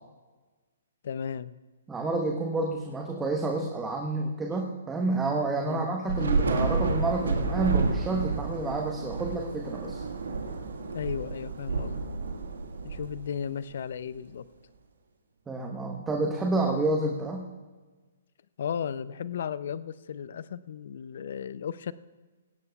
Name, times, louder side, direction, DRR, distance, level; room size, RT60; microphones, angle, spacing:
voice 1, 1.0-1.5 5.6-5.9 10.9-12.0 12.8-14.5 18.6-21.9, left 8 dB, 60° left, 17 dB, 0.5 m, -35 dB
voice 2, 1.9-10.0 15.5-17.5, right 2 dB, 10° right, 1 dB, 1.1 m, -29 dB
Thunder / Rain, 6.1-13.6, right 4 dB, 75° right, 1.6 m, -30 dB
18.0 x 16.0 x 2.4 m, 1.3 s
hypercardioid pair, 135°, 0 cm